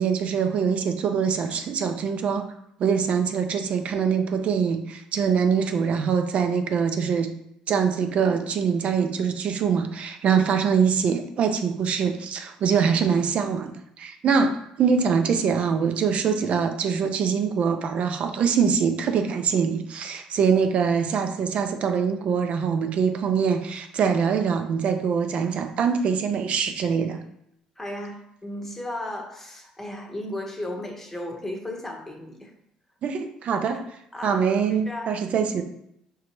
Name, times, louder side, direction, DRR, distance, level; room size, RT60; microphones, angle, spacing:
voice 1, 0.0-2.4 2.8-7.3 7.7-27.2 33.0-33.8 34.2-35.6, right 6 dB, 55° right, 7 dB, 0.5 m, -23 dB
voice 2, 27.8-32.5 34.1-34.4 34.7-35.1, left 1 dB, 15° left, 2 dB, 0.9 m, -35 dB
5.0 x 2.8 x 3.0 m, 0.76 s
supercardioid pair, 80°, 2 cm